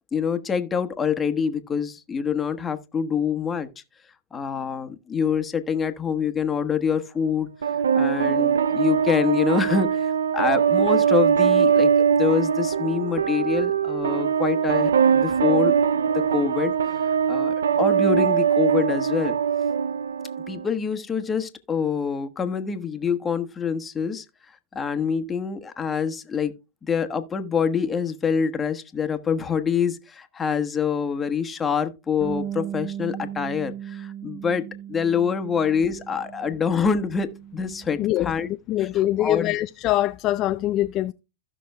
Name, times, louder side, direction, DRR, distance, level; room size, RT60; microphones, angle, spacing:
voice 1, 0.1-3.7 4.3-7.5 7.9-15.8 16.1-16.8 17.0-19.4 20.5-24.2 24.7-26.5 26.8-38.5 38.8-38.9 39.2-39.5, left 6 dB, 20° left, 1.2 m, -26 dB
sound 1, 7.6-20.6, right 7 dB, 85° right, 0.4 m, -22 dB
Bass guitar, 32.2-38.5, right 10 dB, 30° right, 2.0 m, -37 dB
voice 2, 38.0-41.1, left 14 dB, 40° left, 0.5 m, -24 dB
15.5 x 6.0 x 2.2 m
hypercardioid pair, 110°, 0 cm